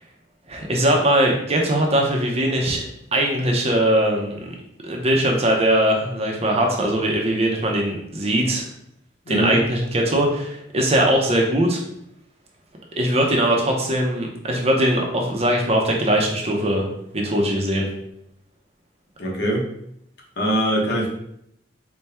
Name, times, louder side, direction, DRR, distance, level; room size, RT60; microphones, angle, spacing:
voice 1, 0.5-2.8 3.1-4.5 4.8-8.7 9.3-11.8 13.0-16.9 17.1-17.9, right 1 dB, 35° right, 0 dB, 0.6 m, -20 dB
voice 2, 9.3-9.6 19.2-19.6 20.4-21.1, right 1 dB, 60° left, -2 dB, 1.0 m, -22 dB
4.2 x 2.2 x 3.4 m, 0.75 s
head